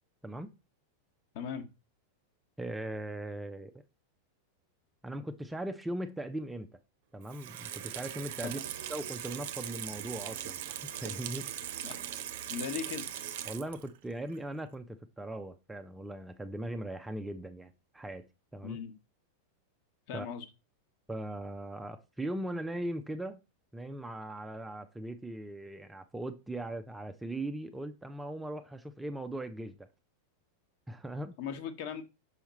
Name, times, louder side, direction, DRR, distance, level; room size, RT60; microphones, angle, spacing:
voice 1, 1.3-1.6 8.4-8.7 11.8-12.1 12.5-13.1 18.6-18.9 20.1-20.4 31.4-32.0, left 7 dB, 45° left, 1.4 m, -38 dB
voice 2, 2.6-3.7 5.0-6.7 7.1-8.6 8.9-11.8 13.5-18.8 20.1-20.3 21.1-23.4 23.7-29.9 30.9-31.4, right 1 dB, 5° right, 0.5 m, -39 dB
Water tap faucet / Sink (filling or washing), 7.2-14.0 14.3-14.4, right 11 dB, 55° right, 0.7 m, -40 dB
5.7 x 5.7 x 4.1 m
figure-of-eight pair, 90°, 0 cm